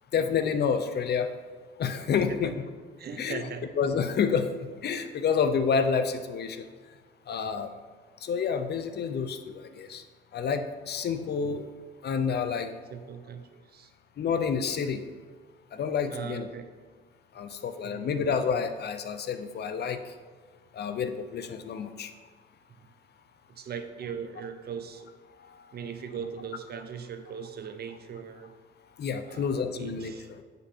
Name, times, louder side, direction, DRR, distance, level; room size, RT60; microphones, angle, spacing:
voice 1, 0.1-1.3 1.8-2.5 3.2-3.4 3.8-4.5 4.8-6.7 7.3-7.7 8.2-10.0 10.3-11.7 12.0-12.7 14.2-15.0 15.7-16.5 17.3-20.0 20.7-22.1 29.0-30.1, left 6 dB, 55° left, 9 dB, 0.7 m, -28 dB
voice 2, 3.0-3.7 12.9-13.9 16.1-16.7 17.8-18.1 23.5-25.1 25.7-28.5 29.2-30.3, right 7 dB, 55° right, 7 dB, 0.8 m, -39 dB
8.0 x 5.4 x 4.4 m, 1.5 s
cardioid pair, 90°, 20 cm